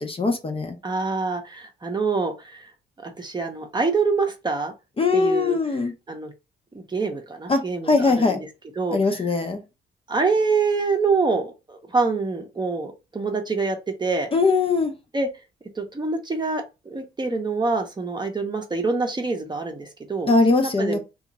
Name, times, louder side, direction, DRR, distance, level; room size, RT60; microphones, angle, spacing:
voice 1, 0.0-0.7 5.0-5.9 7.5-8.4 8.9-9.6 14.3-14.9 20.3-21.0, left 3 dB, 30° left, 0.7 m, -21 dB
voice 2, 0.8-2.6 3.0-4.7 5.1-5.6 6.1-6.3 6.7-8.5 8.8-9.2 10.1-14.3 15.1-15.3 15.8-21.0, right 4 dB, 20° right, 0.8 m, -26 dB
2.8 x 2.4 x 4.0 m
cardioid pair, 90°, 20 cm